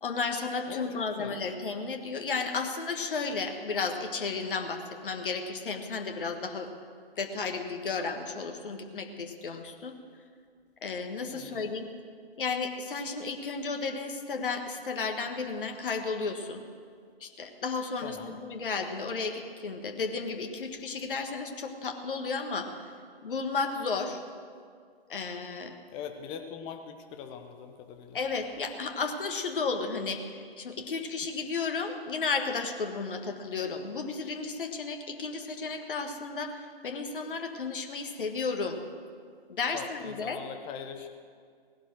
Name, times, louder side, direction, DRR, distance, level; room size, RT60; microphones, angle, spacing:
voice 1, 0.0-6.7 7.2-9.9 10.8-11.9 12.4-16.6 17.2-22.7 23.2-24.2 25.1-25.7 28.1-38.8 39.5-40.4, left 4 dB, 55° left, 5 dB, 1.5 m, -33 dB
voice 2, 0.7-1.4 11.3-11.7 18.0-18.4 25.9-28.2 39.7-41.1, left 7 dB, 15° left, 6 dB, 0.9 m, -42 dB
18.0 x 11.0 x 6.2 m, 2.1 s
figure-of-eight pair, 125°, 31 cm